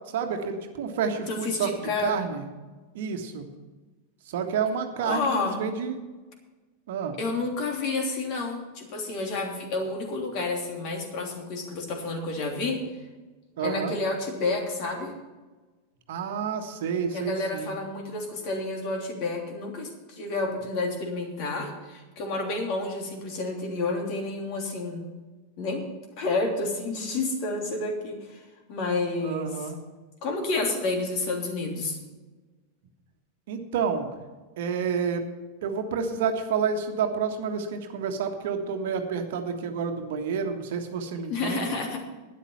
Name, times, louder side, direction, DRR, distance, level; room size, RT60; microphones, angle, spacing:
voice 1, 0.1-2.4 2.9-3.5 4.3-6.0 6.9-7.2 13.6-13.9 16.1-17.8 29.2-29.8 33.5-34.1 34.6-35.2 35.6-41.7, right 6 dB, 55° right, 5 dB, 1.5 m, -29 dB
voice 2, 1.3-2.2 5.0-5.6 7.2-12.8 13.6-15.1 17.1-25.1 25.6-25.8 26.2-28.4 28.7-29.7 30.2-32.0 41.3-42.0, left 3 dB, 40° left, 2 dB, 3.1 m, -30 dB
12.5 x 9.9 x 5.8 m, 1.3 s
figure-of-eight pair, 90°, 0 cm